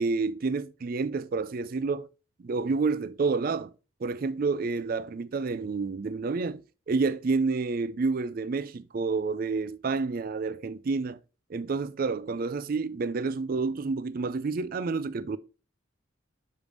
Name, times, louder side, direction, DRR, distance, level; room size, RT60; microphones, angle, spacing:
voice 1, 0.0-2.1 2.4-3.7 4.0-11.2 11.5-15.4, right 4 dB, 45° right, 0.4 m, -29 dB
6.6 x 5.2 x 3.1 m
head